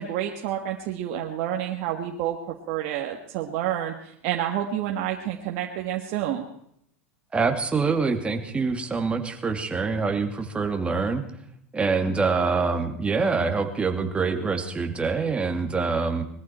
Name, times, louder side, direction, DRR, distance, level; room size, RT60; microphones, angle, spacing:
voice 1, 0.0-6.5, right 11 dB, 60° right, 1 dB, 1.7 m, -29 dB
voice 2, 7.3-11.2 11.7-16.2, right 4 dB, 15° right, 5 dB, 2.3 m, -25 dB
21.5 x 14.0 x 4.4 m, 0.72 s
supercardioid pair, 115°, 7 cm